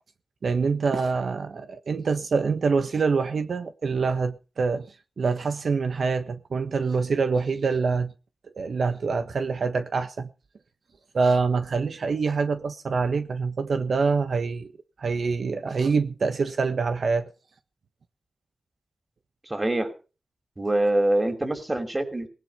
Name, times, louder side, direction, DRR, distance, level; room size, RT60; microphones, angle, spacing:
voice 1, 0.4-8.1 8.5-10.3 11.1-14.7 15.0-17.3, right 4 dB, 75° right, 1.4 m, -25 dB
voice 2, 19.4-19.9 20.6-22.3, right 1 dB, 25° right, 6.0 m, -24 dB
20.0 x 11.0 x 5.8 m
wide cardioid pair, 80°, 0 cm